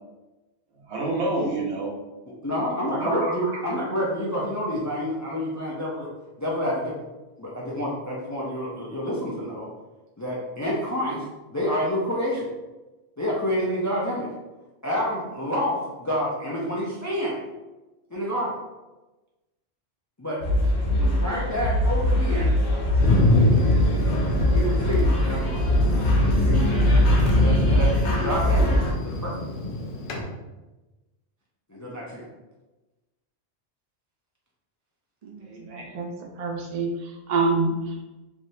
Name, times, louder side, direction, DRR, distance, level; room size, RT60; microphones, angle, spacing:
voice 1, 0.9-2.0 3.0-3.5 35.4-35.9, right 2 dB, 80° right, -2 dB, 1.0 m, -28 dB
voice 2, 2.4-6.1 6.4-7.0 7.4-9.7 10.2-11.2 11.5-12.5 13.2-14.3 14.8-17.4 18.1-18.6 20.2-20.4 21.0-22.6 24.5-25.7 26.4-27.0 27.3-29.4 31.7-32.3, equal, 30° left, -5 dB, 0.3 m, -28 dB
sound 1, 20.4-28.9, left 1 dB, 80° left, 1.0 m, -22 dB
Thunder, 23.0-30.2, left 1 dB, 60° left, 0.7 m, -25 dB
voice 3, 35.2-36.1 36.4-38.1, right 3 dB, 55° right, 2 dB, 0.4 m, -27 dB
3.2 x 2.7 x 2.7 m, 1.1 s
omnidirectional pair, 1.1 m